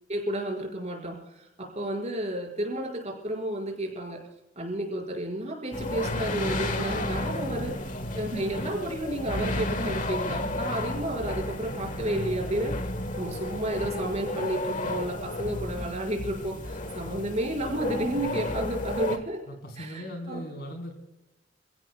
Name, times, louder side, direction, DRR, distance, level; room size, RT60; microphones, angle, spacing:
voice 1, 0.1-4.2 4.6-7.8 8.1-12.8 13.2-19.4 19.8-20.4, right 1 dB, 40° right, 1 dB, 5.2 m, -31 dB
sound 1, 5.7-19.2, left 1 dB, 45° left, 1.4 m, -32 dB
voice 2, 7.3-8.1 19.5-20.9, equal, 65° left, 4 dB, 4.1 m, -39 dB
29.5 x 16.0 x 2.3 m, 0.94 s
head